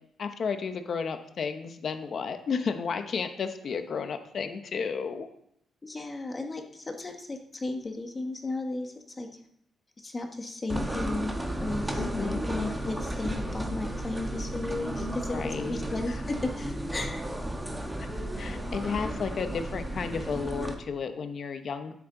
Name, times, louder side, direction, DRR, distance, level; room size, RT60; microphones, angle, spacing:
voice 1, 0.2-5.3 12.0-12.4 15.3-15.8 16.1-16.2 18.4-21.9, left 5 dB, 45° left, 8 dB, 1.0 m, -32 dB
voice 2, 5.8-9.4 10.0-11.3 11.6-17.3, left 2 dB, 20° left, 4 dB, 1.3 m, -35 dB
sound 1, 10.7-20.7, right 1 dB, 5° right, 1.3 m, -33 dB
15.5 x 8.5 x 3.9 m, 0.73 s
cardioid pair, 150°, 0 cm